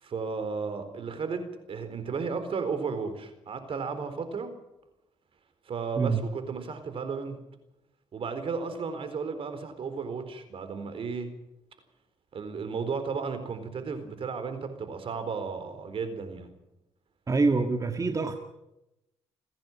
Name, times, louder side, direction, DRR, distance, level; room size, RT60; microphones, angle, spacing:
voice 1, 0.0-4.5 5.7-7.4 8.1-11.3 12.3-16.5, right 5 dB, 60° right, 10 dB, 4.1 m, -34 dB
voice 2, 17.3-18.4, right 3 dB, 30° right, 5 dB, 1.8 m, -25 dB
30.0 x 10.5 x 9.1 m, 0.91 s
cardioid pair, 80°, 11 cm